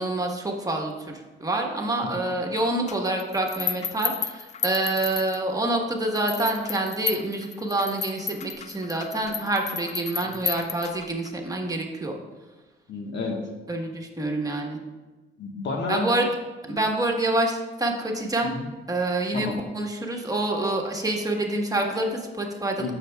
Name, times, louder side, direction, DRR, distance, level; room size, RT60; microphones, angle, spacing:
voice 1, 0.0-12.1 13.7-14.8 15.9-16.3 16.7-18.5 18.9-19.5 19.7-22.9, right 2 dB, 20° right, 1 dB, 1.4 m, -27 dB
sound 1, 2.9-5.7 6.2-11.3, left 6 dB, 35° left, 0.4 m, -33 dB
voice 2, 12.9-13.4 15.4-16.1 16.7-16.8 18.4-18.7 19.3-19.6 22.8-22.9, left 3 dB, 65° left, 1 dB, 1.4 m, -30 dB
13.5 x 6.5 x 2.3 m, 1.2 s
cardioid pair, 90°, 20 cm